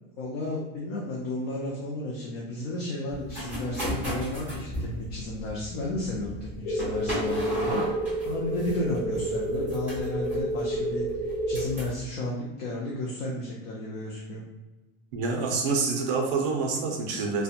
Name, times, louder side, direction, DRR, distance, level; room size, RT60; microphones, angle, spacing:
voice 1, 0.2-7.9 8.2-14.4, left 2 dB, 45° left, -4 dB, 0.5 m, -33 dB
sound 1, 3.1-12.0, equal, 5° right, 1.1 m, -36 dB
sound 2, 6.6-11.6, right 1 dB, 65° left, 0.9 m, -30 dB
voice 2, 15.1-17.4, right 4 dB, 45° right, 1 dB, 0.5 m, -27 dB
2.7 x 2.2 x 2.5 m, 1.1 s
supercardioid pair, 175°, 30 cm